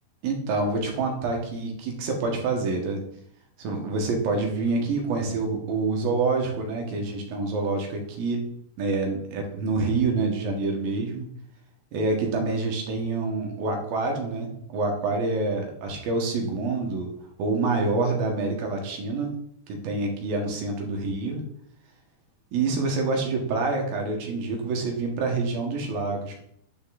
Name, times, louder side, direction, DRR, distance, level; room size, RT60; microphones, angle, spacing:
voice 1, 0.2-3.0 3.6-8.5 8.8-11.3 11.9-17.1 17.4-19.3 19.7-21.4 22.5-26.4, right 3 dB, 70° right, 2 dB, 2.9 m, -27 dB
9.8 x 5.2 x 3.8 m, 0.70 s
omnidirectional pair, 4.7 m